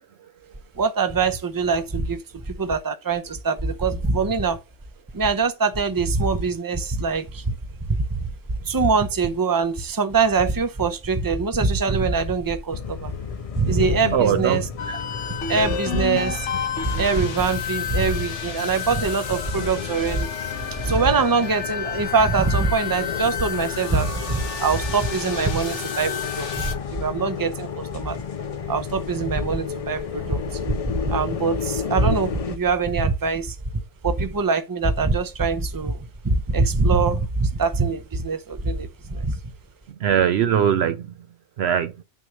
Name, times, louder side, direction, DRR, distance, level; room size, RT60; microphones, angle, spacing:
voice 1, 0.8-4.6 5.1-7.5 8.1-8.2 8.6-13.1 13.6-14.6 14.9-15.0 15.5-16.5 17.0-20.3 20.8-28.2 28.7-33.6 34.0-39.3, right 4 dB, 20° right, 0.7 m, -23 dB
sound 1, 12.7-32.6, left 7 dB, 45° left, 0.4 m, -32 dB
voice 2, 14.1-14.7 39.9-41.2 41.6-42.0, right 9 dB, 65° right, 0.8 m, -21 dB
sound 2, 14.8-26.7, left 7 dB, 70° left, 1.4 m, -31 dB
9.1 x 3.2 x 6.2 m
omnidirectional pair, 1.3 m